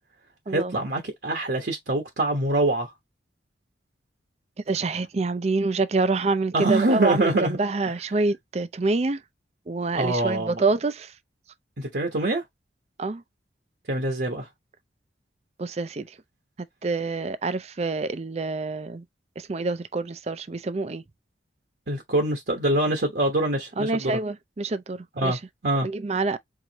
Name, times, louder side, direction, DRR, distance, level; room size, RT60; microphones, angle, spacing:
voice 1, 0.5-2.9 6.5-7.6 7.9-8.0 10.0-10.6 11.8-12.4 13.9-14.5 21.9-24.2 25.2-25.9, right 2 dB, 65° right, 1.0 m, -24 dB
voice 2, 4.7-9.2 9.7-11.1 13.0-13.2 15.6-16.1 16.8-19.0 19.4-21.0 23.8-25.4 25.8-26.4, right 3 dB, 35° right, 0.4 m, -26 dB
4.7 x 2.6 x 2.9 m
head